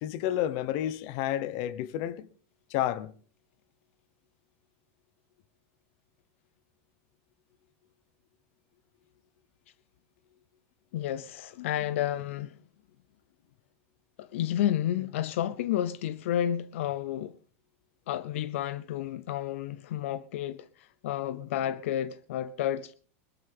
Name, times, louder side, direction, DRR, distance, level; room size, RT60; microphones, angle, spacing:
voice 1, 0.0-2.3 2.7-3.1, left 12 dB, 55° left, 1.0 m, -30 dB
voice 2, 10.9-12.6 14.2-17.4 18.1-22.9, left 11 dB, 80° left, 0.6 m, -31 dB
21.0 x 13.0 x 3.5 m
supercardioid pair, 140°, 7 cm